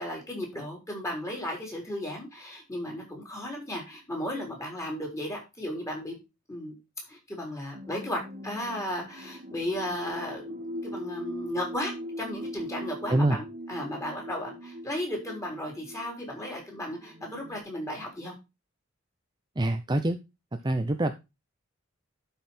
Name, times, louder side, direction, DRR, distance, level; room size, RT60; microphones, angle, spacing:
voice 1, 0.0-6.2 6.5-6.7 7.1-10.6 10.8-13.4 13.7-18.3, left 1 dB, 15° left, 3.9 m, -35 dB
sound 1, 7.7-17.6, equal, 45° right, 1.8 m, -41 dB
voice 2, 19.6-20.2 20.6-21.1, right 1 dB, 20° right, 0.6 m, -25 dB
11.5 x 5.7 x 4.3 m
head